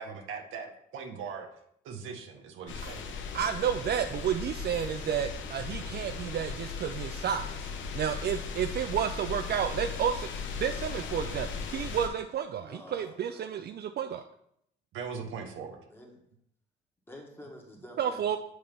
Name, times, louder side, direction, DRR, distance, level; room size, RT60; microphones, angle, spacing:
voice 1, 0.0-1.5 1.8-3.1 14.9-15.8, right 6 dB, 85° right, 4 dB, 1.1 m, -40 dB
sound 1, 2.7-12.1, left 5 dB, 75° left, 1.0 m, -37 dB
voice 2, 3.3-10.3 10.6-14.2 18.0-18.4, right 8 dB, 55° right, 8 dB, 0.4 m, -31 dB
voice 3, 12.6-13.7 15.9-16.2 17.1-18.4, left 1 dB, 10° left, 0 dB, 1.8 m, -49 dB
7.9 x 3.3 x 5.3 m, 0.73 s
cardioid pair, 90°, 20 cm